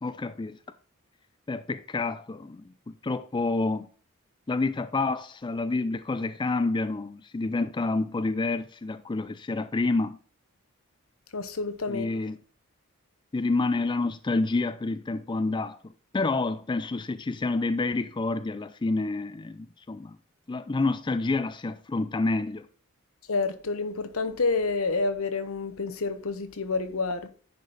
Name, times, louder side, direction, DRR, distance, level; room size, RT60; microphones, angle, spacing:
voice 1, 0.0-0.6 1.5-3.9 4.5-10.2 11.9-12.4 13.3-15.8 16.1-20.2 20.5-22.7, left 3 dB, 20° left, 0.4 m, -28 dB
voice 2, 11.3-12.1 23.3-27.3, left 3 dB, 75° left, 1.0 m, -29 dB
10.5 x 5.2 x 4.0 m
head